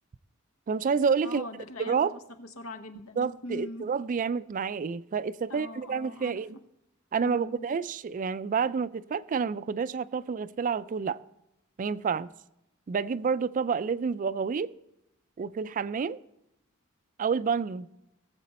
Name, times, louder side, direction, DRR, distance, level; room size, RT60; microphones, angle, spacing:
voice 1, 0.7-1.4 1.8-2.2 3.2-6.6 7.1-11.2 11.8-12.3 12.9-14.7 15.4-16.2 17.2-17.9, right 5 dB, 40° right, 0.3 m, -29 dB
voice 2, 1.2-3.9 5.5-6.4 7.2-7.7, left 2 dB, 85° left, 1.1 m, -42 dB
17.5 x 7.6 x 4.2 m
head